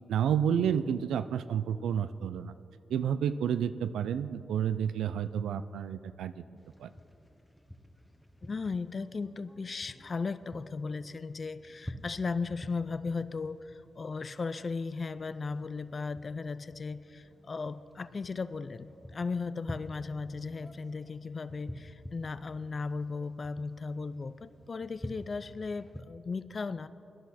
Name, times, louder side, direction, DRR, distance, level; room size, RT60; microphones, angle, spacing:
voice 1, 0.1-2.5 2.9-6.4 6.8-6.9, right 8 dB, 85° right, 12 dB, 0.3 m, -30 dB
sound 1, 6.6-26.0, equal, 10° left, 1.1 m, -50 dB
voice 2, 8.4-26.9, left 4 dB, 50° left, 14 dB, 0.4 m, -36 dB
18.5 x 10.5 x 4.2 m, 2.7 s
supercardioid pair, 50°, 0 cm